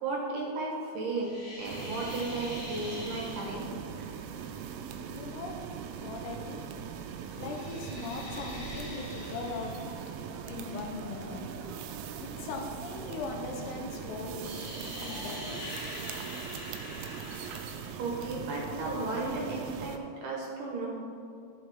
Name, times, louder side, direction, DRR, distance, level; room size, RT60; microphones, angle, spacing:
voice 1, 0.0-3.6 18.0-20.9, right 3 dB, 65° right, -3 dB, 2.3 m, -34 dB
sound 1, 1.1-3.7 7.2-10.0 14.4-18.0, left 1 dB, 55° left, 0.7 m, -43 dB
sound 2, 1.6-20.0, right 7 dB, 85° right, 2.1 m, -41 dB
voice 2, 5.1-5.6 5.9-6.8 7.4-9.7 10.5-11.5 12.2-14.7 15.0-15.8, left 4 dB, 75° left, 2 dB, 2.7 m, -40 dB
11.5 x 7.0 x 3.5 m, 2.5 s
omnidirectional pair, 4.9 m